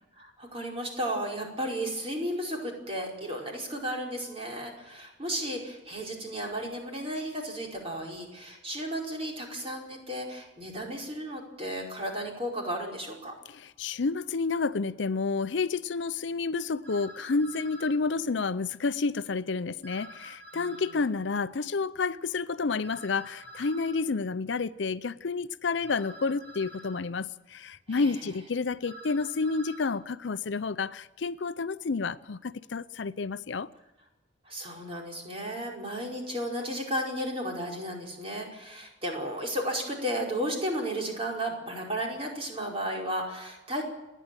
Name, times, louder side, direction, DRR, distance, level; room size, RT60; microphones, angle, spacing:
voice 1, 0.2-13.3 20.5-21.0 27.9-28.1 34.4-43.8, equal, 30° right, 4.8 m, -34 dB
voice 2, 13.5-33.7, left 4 dB, 70° left, 0.6 m, -30 dB
sound 1, 16.8-18.0 19.8-21.0 22.8-24.0 25.8-27.0 28.8-29.9, equal, 50° right, 7.6 m, -47 dB
29.5 x 10.0 x 9.0 m
head